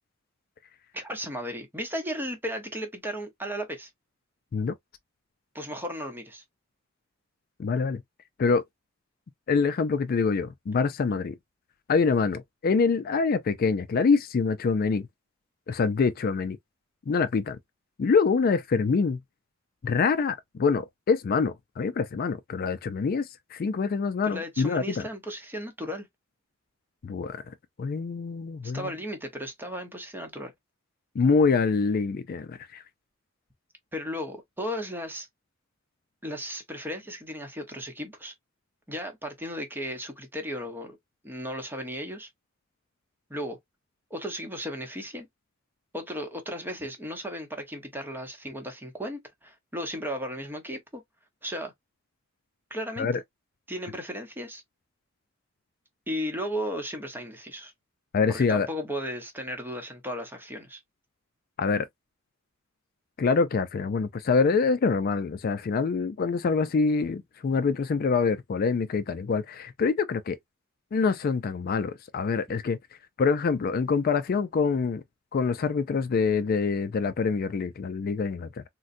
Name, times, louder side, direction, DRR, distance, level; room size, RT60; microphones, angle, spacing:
voice 1, 0.9-3.9 5.5-6.4 24.2-26.1 28.6-30.5 33.9-35.3 36.2-38.3 38.9-41.0 41.2-42.3 43.3-43.6 44.1-45.3 45.9-51.0 51.4-51.7 52.7-53.1 53.7-54.6 56.1-57.7 58.3-60.8, equal, 10° right, 0.8 m, -35 dB
voice 2, 7.6-8.0 8.4-8.6 9.5-11.4 11.9-15.1 15.7-16.6 17.1-17.6 18.0-19.2 19.8-25.0 27.0-28.9 31.1-32.8 53.0-53.2 58.1-58.7 61.6-61.9 63.2-70.4 70.9-72.8 73.2-75.0 75.3-78.6, left 5 dB, 45° left, 0.3 m, -25 dB
3.8 x 2.1 x 2.5 m
head